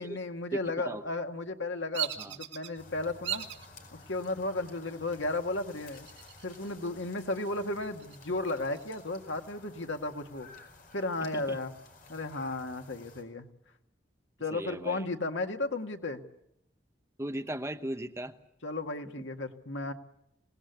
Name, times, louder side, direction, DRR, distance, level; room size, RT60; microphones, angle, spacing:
voice 1, 0.0-3.4 3.9-6.1 6.4-10.5 10.9-11.7 12.1-13.5 14.4-16.2 18.6-19.9, left 2 dB, 90° left, 5 dB, 1.9 m, -34 dB
Bird vocalization bird call bird song, 1.9-2.7 3.2-3.7 4.2-4.8 5.9-6.7 7.0-7.1 7.6-9.0, right 12 dB, 75° right, 2.5 m, -38 dB
sound 1, 2.7-13.2, left 3 dB, 50° left, 4.8 m, -54 dB
voice 2, 11.2-11.6 14.5-15.1 17.2-18.3, right 1 dB, 15° right, 7 dB, 1.0 m, -37 dB
26.0 x 19.0 x 8.2 m, 0.79 s
head